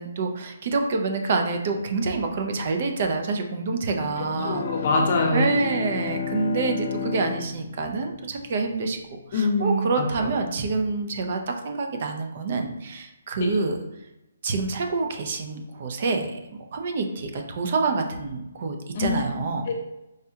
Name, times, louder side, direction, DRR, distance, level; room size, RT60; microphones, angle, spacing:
voice 1, 0.0-4.6 5.3-13.8 14.4-16.4 16.7-19.7, right 3 dB, 45° right, 4 dB, 0.6 m, -27 dB
Bowed string instrument, 3.9-8.7, left 7 dB, 60° left, 0.4 m, -33 dB
voice 2, 4.4-5.4 9.3-10.3 13.4-13.5 18.9-19.2 19.7-19.8, left 2 dB, 45° left, 1 dB, 0.8 m, -24 dB
4.8 x 2.2 x 2.8 m, 0.94 s
hypercardioid pair, 155°, 0 cm